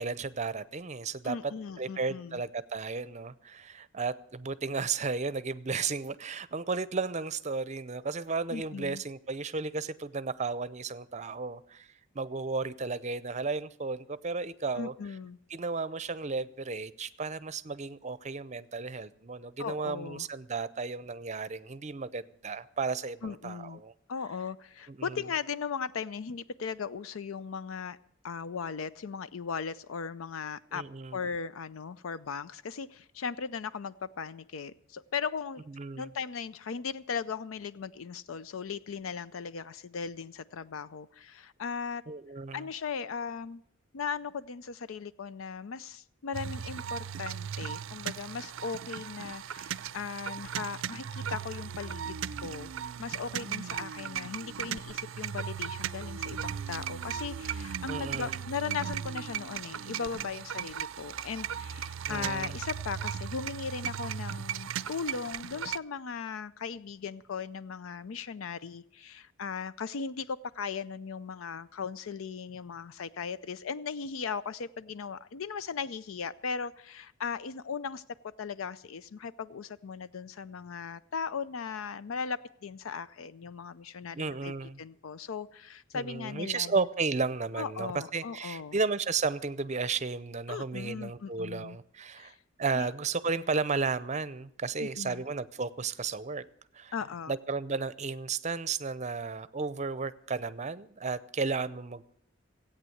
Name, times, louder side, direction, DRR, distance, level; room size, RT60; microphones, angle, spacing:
voice 1, 0.0-1.4 1.8-11.9 12.1-14.9 15.5-23.9 24.9-25.2 30.7-31.2 35.7-36.1 42.1-42.7 57.9-58.3 62.1-62.6 84.1-84.8 85.9-92.3 92.6-96.4 96.7-96.9 97.3-102.1, right 4 dB, 35° right, 16 dB, 0.6 m, -33 dB
voice 2, 1.2-2.4 8.5-9.0 14.7-15.4 19.6-20.3 23.2-23.8 24.1-28.0 28.2-30.8 31.1-35.6 36.0-42.0 42.5-43.6 43.9-52.7 53.0-78.0 78.4-86.8 87.6-88.8 90.5-91.8 92.1-92.4 92.8-92.9 94.8-95.2 96.9-97.3, left 6 dB, 80° left, 16 dB, 0.5 m, -38 dB
sound 1, 46.3-65.8, right 8 dB, 75° right, 0.5 m, -37 dB
16.5 x 8.8 x 7.8 m, 0.71 s
head